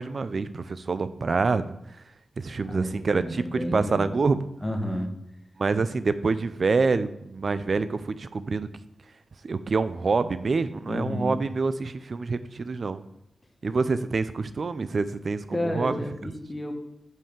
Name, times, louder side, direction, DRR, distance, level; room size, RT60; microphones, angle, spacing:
voice 1, 0.0-1.7 2.4-4.4 5.6-8.7 9.4-13.0 13.6-16.0, right 4 dB, 50° right, 13 dB, 0.5 m, -26 dB
voice 2, 2.6-4.1 4.6-5.1 10.8-11.4 15.5-16.7, left 1 dB, 15° left, 3 dB, 1.4 m, -31 dB
5.5 x 5.4 x 6.7 m, 0.81 s
wide cardioid pair, 90°, 0 cm